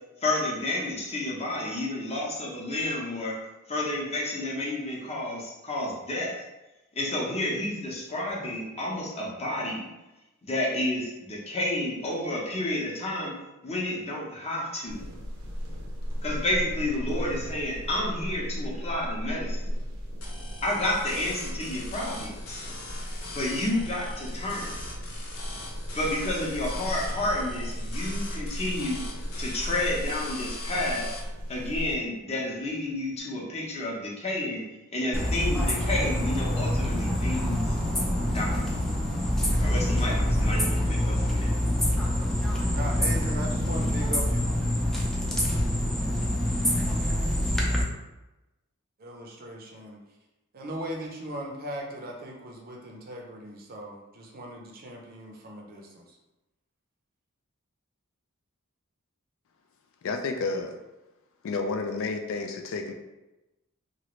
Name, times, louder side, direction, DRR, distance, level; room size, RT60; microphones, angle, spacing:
voice 1, 0.2-3.4 3.7-6.3 6.9-9.9 10.4-13.3 13.6-15.0 16.2-19.7 20.6-22.6 23.3-24.7 25.9-29.0 29.4-31.1 31.5-34.6 34.9-37.7 38.2-38.6 39.6-41.5, left 1 dB, 30° left, -4 dB, 0.8 m, -30 dB
sound 1, 14.9-32.0, equal, 90° right, 0.7 m, -36 dB
sound 2, 20.2-31.2, left 3 dB, 90° left, 0.7 m, -42 dB
sound 3, 35.1-47.8, left 1 dB, ahead, 0.4 m, -26 dB
voice 2, 42.7-44.4 49.0-50.0 50.5-56.2, right 1 dB, 45° right, 0 dB, 0.6 m, -38 dB
voice 3, 60.0-60.7 61.4-62.9, left 3 dB, 65° left, 4 dB, 0.4 m, -30 dB
3.1 x 2.4 x 3.0 m, 1.0 s
head